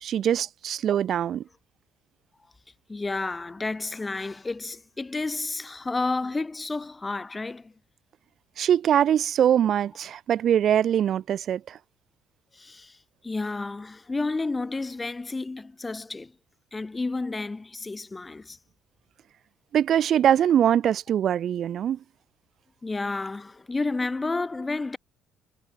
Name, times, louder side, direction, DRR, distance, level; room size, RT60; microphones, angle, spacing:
voice 1, 0.0-1.4 8.6-11.8 19.7-22.0, right 10 dB, 55° right, 0.9 m, -22 dB
voice 2, 2.9-7.7 12.5-13.0 13.2-16.3 16.7-18.6 22.8-25.0, left 3 dB, 20° left, 1.9 m, -31 dB
cardioid pair, 90°, 0 cm